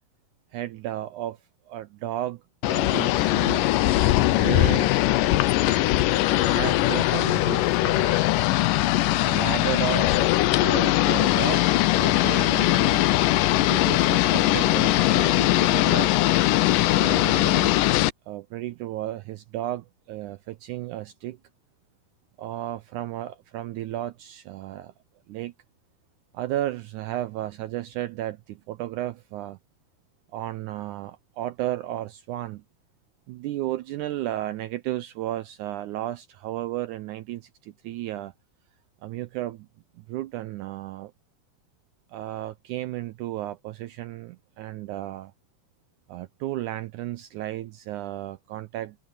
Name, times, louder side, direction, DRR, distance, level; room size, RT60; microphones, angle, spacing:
voice 1, 0.5-1.4 1.7-3.6 4.2-4.9 6.4-8.2 9.2-10.2 10.6-11.7 12.0-13.1 13.7-16.1 16.9-17.8 18.3-21.4 22.4-24.9 25.3-25.5 26.3-29.6 30.3-32.6 33.3-38.3 39.0-39.7 40.0-41.1 42.1-45.3 46.1-49.0, right 14 dB, 80° right, 1.8 m, -33 dB
sound 1, 2.6-18.1, left 16 dB, 75° left, 2.2 m, -21 dB
omnidirectional pair, 4.2 m